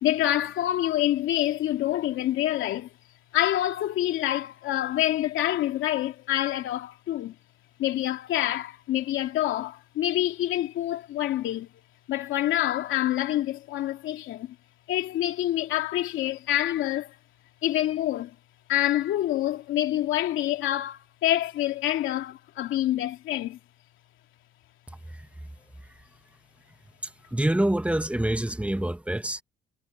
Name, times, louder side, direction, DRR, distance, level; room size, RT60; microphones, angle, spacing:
voice 1, 0.0-2.9 3.3-7.3 7.8-11.7 12.1-14.6 14.9-17.2 17.6-18.4 18.7-23.6, left 13 dB, 85° left, 2.6 m, -26 dB
voice 2, 27.3-29.4, right 1 dB, 5° right, 1.9 m, -26 dB
cardioid pair, 90°, 20 cm